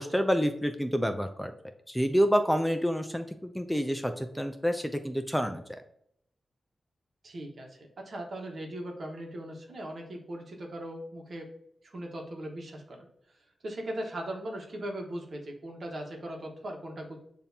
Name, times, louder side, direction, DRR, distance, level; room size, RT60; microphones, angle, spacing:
voice 1, 0.0-1.5 1.9-5.8, equal, 5° left, 7 dB, 0.4 m, -28 dB
voice 2, 7.2-11.5 11.8-13.1 13.6-17.2, right 1 dB, 60° right, 2 dB, 1.1 m, -39 dB
7.0 x 2.7 x 2.7 m, 0.73 s
cardioid pair, 80°, 0 cm